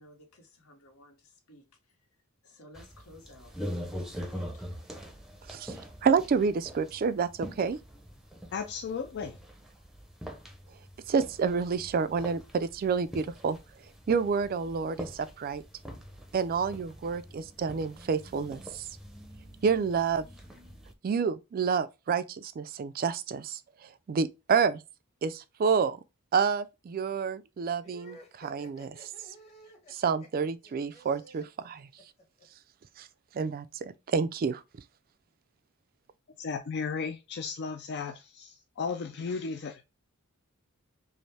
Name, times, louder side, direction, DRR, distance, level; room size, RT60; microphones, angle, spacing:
voice 1, 0.0-1.7 2.4-3.5 4.3-4.8, left 1 dB, 75° left, 1.2 m, -55 dB
sound 1, 2.7-20.9, equal, ahead, 0.6 m, -44 dB
voice 2, 5.5-7.8 11.1-13.6 14.1-15.6 16.3-18.9 19.6-20.3 21.0-24.8 25.2-26.0 26.3-29.1 29.9-31.9 33.0-33.1 33.3-34.6, right 5 dB, 40° right, 0.3 m, -29 dB
voice 3, 8.5-9.4 36.4-39.9, left 5 dB, 50° left, 0.4 m, -35 dB
sound 2, 27.8-32.4, right 1 dB, 30° left, 1.2 m, -53 dB
5.2 x 2.1 x 3.3 m
head